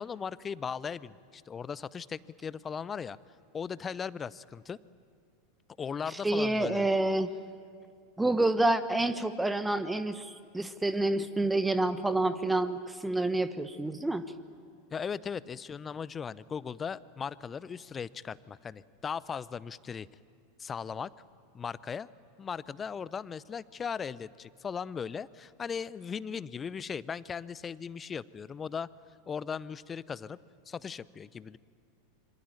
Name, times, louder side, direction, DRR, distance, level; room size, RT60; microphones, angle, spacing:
voice 1, 0.0-3.2 3.5-4.8 5.8-6.9 14.9-20.1 20.6-21.1 21.5-22.1 22.4-28.9 29.3-30.4 30.7-31.6, left 6 dB, 20° left, 20 dB, 0.7 m, -38 dB
voice 2, 6.2-7.3 8.2-14.2, right 2 dB, 5° right, 12 dB, 1.1 m, -28 dB
26.5 x 24.5 x 9.1 m, 2.2 s
figure-of-eight pair, 85°, 0 cm